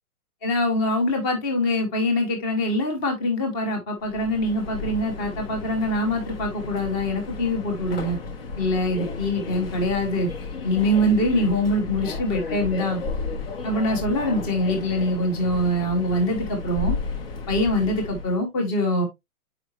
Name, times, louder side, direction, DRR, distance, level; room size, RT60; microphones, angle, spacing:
voice 1, 0.4-8.2 8.6-10.3 10.6-13.0 13.6-17.0 17.5-19.1, left 1 dB, 15° left, 1.0 m, -24 dB
Subway metro underground, 4.0-18.4, left 4 dB, 40° left, 1.0 m, -33 dB
7.8 x 4.9 x 2.9 m
hypercardioid pair, 170°, 45 cm